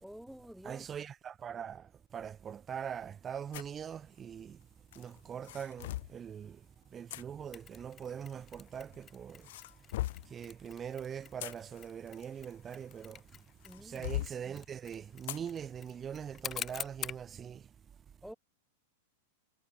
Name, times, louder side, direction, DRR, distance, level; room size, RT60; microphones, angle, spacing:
voice 1, 0.0-0.9 13.6-14.1 18.2-18.3, equal, ahead, 2.4 m, -49 dB
voice 2, 0.6-4.6 5.0-6.7 6.9-9.5 10.2-13.2 13.8-17.7, right 8 dB, 25° right, 0.6 m, -42 dB
sound 1, 3.5-3.8 4.9-6.2 7.1-7.2 8.4-9.0 9.4-10.3 11.1-13.2 13.6-14.3 15.3-15.5 15.9-16.0 16.6-16.8, left 16 dB, 65° left, 0.4 m, -39 dB
Mechanisms, 7.5-17.3, left 9 dB, 25° left, 2.1 m, -48 dB
hypercardioid pair, 130°, 0 cm